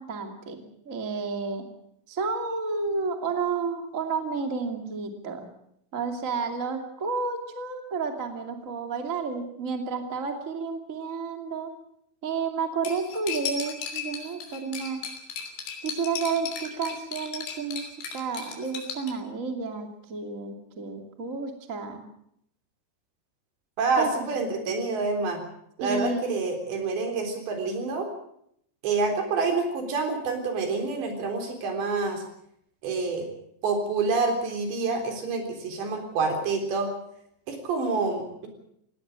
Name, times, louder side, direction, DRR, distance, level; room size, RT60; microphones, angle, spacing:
voice 1, 0.0-1.6 2.1-5.5 5.9-11.7 12.2-15.0 15.8-22.0 24.0-24.5 25.8-26.3, right 4 dB, 25° right, 5 dB, 2.0 m, -31 dB
Cutlery silverware, 12.8-19.1, left 6 dB, 75° left, 5.4 m, -36 dB
voice 2, 23.8-25.4 25.8-28.1 28.8-32.2 32.8-33.3 33.6-36.9 37.5-38.5, right 4 dB, 75° right, 4 dB, 5.9 m, -27 dB
18.5 x 17.5 x 8.8 m, 0.74 s
omnidirectional pair, 5.1 m